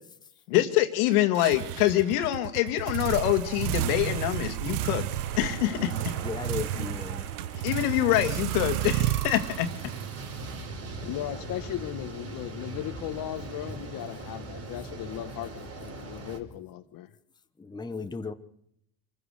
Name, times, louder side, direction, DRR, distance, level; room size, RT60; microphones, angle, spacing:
voice 1, 0.5-5.1 5.4-6.2 6.7-6.9 7.5-9.7, left 14 dB, 75° left, 8 dB, 2.3 m, -25 dB
sound 1, 1.3-11.1, right 14 dB, 90° right, 0.9 m, -32 dB
sound 2, 5.1-16.4, right 3 dB, 35° right, 4.6 m, -41 dB
voice 2, 6.2-7.3 17.6-18.3, left 4 dB, 10° left, 8 dB, 1.1 m, -35 dB
voice 3, 11.0-17.1, left 13 dB, 50° left, 7 dB, 1.4 m, -37 dB
26.0 x 15.0 x 6.7 m, 0.77 s
supercardioid pair, 105°, 44 cm